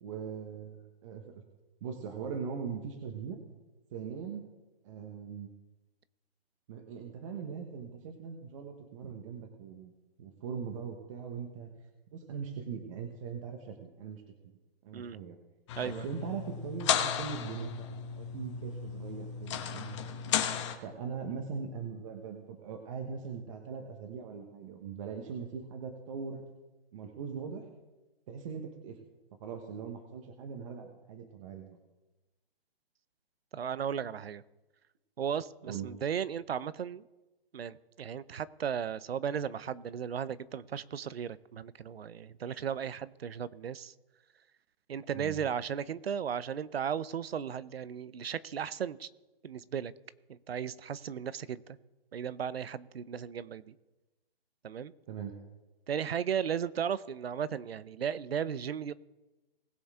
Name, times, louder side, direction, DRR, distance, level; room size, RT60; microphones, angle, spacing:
voice 1, 0.0-1.4 1.8-3.4 3.9-4.4 4.8-5.5 6.7-9.9 10.2-11.7 12.1-14.2 14.8-15.3 15.8-20.0 20.8-26.4 26.9-27.7 28.3-29.0 29.4-31.8 35.6-35.9 45.1-45.4 55.1-55.4, right 6 dB, 35° right, 3 dB, 1.2 m, -40 dB
sound 1, 15.7-20.7, left 9 dB, 30° left, 1.2 m, -34 dB
voice 2, 15.8-16.1 33.5-34.4 35.2-37.0 37.5-43.9 44.9-49.1 49.4-49.9 50.3-51.8 52.1-53.7 54.6-54.9 55.9-58.9, right 8 dB, 80° right, 18 dB, 0.7 m, -35 dB
20.0 x 7.1 x 3.7 m, 1.1 s
hypercardioid pair, 155°, 30 cm